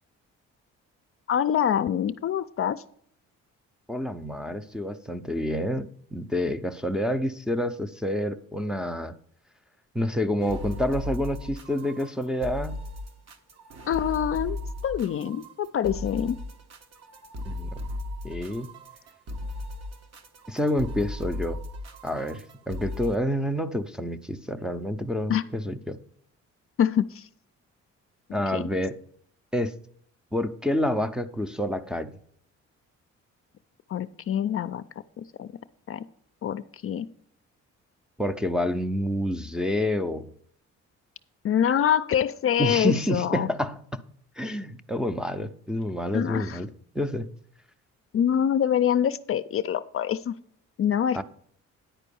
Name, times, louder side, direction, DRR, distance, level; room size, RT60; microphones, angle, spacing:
voice 1, 1.3-2.8 13.9-14.6 14.8-16.4 25.3-25.4 26.8-27.3 28.5-28.6 33.9-34.8 35.2-35.5 35.9-36.0 36.4-37.1 41.4-43.5 46.1-46.6 48.1-50.4 50.8-51.2, left 9 dB, 45° left, 0.5 m, -25 dB
voice 2, 3.9-9.2 9.9-12.8 17.4-17.8 18.2-18.7 20.5-21.6 22.0-26.0 28.3-29.0 29.5-29.7 30.3-32.2 38.2-40.3 42.6-43.8 44.4-46.7 46.9-47.3 51.1-51.2, left 1 dB, 5° right, 0.6 m, -28 dB
sound 1, 10.4-23.2, left 1 dB, 60° right, 1.3 m, -37 dB
10.0 x 4.5 x 6.9 m
cardioid pair, 90°, 30 cm